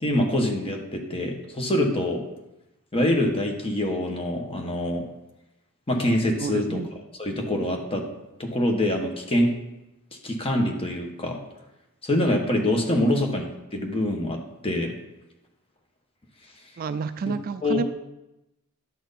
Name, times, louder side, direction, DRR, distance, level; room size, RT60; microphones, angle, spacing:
voice 1, 0.0-2.2 2.9-5.0 5.9-6.8 7.2-8.0 8.4-9.5 10.2-11.4 12.0-13.5 13.7-14.9 17.2-17.3 17.6-17.8, left 1 dB, 25° left, 2 dB, 1.2 m, -25 dB
voice 2, 6.4-6.9 12.9-13.2 16.8-17.8, right 4 dB, 40° right, 11 dB, 0.3 m, -30 dB
11.0 x 6.0 x 4.1 m, 0.94 s
head